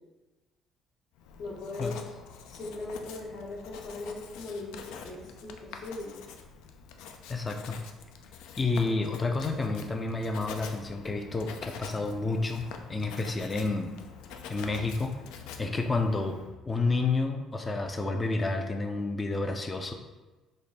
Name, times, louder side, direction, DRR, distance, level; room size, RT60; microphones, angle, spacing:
Writing, 1.2-16.6, left 6 dB, 90° left, 0.4 m, -46 dB
voice 1, 1.4-2.0 2.5-6.2, left 2 dB, 65° left, -9 dB, 1.0 m, -39 dB
voice 2, 7.3-7.8 8.6-13.9 14.5-15.1 15.6-16.4 16.7-19.9, left 3 dB, 15° left, 5 dB, 0.3 m, -30 dB
3.4 x 2.9 x 4.1 m, 1.2 s
cardioid pair, 160°, 0 cm